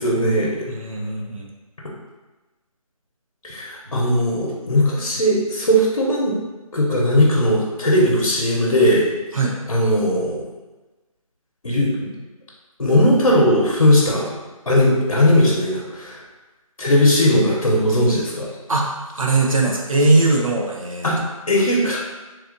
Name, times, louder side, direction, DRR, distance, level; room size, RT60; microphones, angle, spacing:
voice 1, 0.0-0.5 3.4-6.3 6.7-9.1 9.7-10.4 11.6-12.1 12.8-14.3 14.7-16.2 16.8-18.5 21.0-21.2 21.5-22.1, left 1 dB, 60° left, -3 dB, 0.9 m, -18 dB
voice 2, 0.7-1.5 9.3-9.5 18.7-21.1, right 2 dB, 65° right, -1 dB, 0.9 m, -20 dB
3.3 x 2.7 x 3.8 m, 1.2 s
figure-of-eight pair, 175°, 19 cm